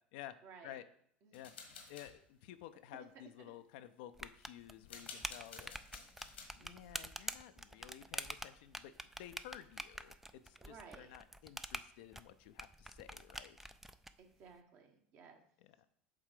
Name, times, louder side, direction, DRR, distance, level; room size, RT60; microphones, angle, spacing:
voice 1, 0.4-0.8 1.2-1.4 6.6-7.1 10.6-11.1 14.2-15.4, right 5 dB, 50° right, 4 dB, 1.3 m, -57 dB
sound 1, 1.3-2.1 4.8-6.5, left 5 dB, 85° left, 1.4 m, -52 dB
voice 2, 1.9-5.7 6.5-13.6 15.6-15.9, left 12 dB, 65° left, 11 dB, 0.5 m, -53 dB
sound 2, 4.1-14.1, right 1 dB, 5° right, 0.4 m, -47 dB
7.4 x 3.6 x 5.0 m, 0.66 s
hypercardioid pair, 80°, 6 cm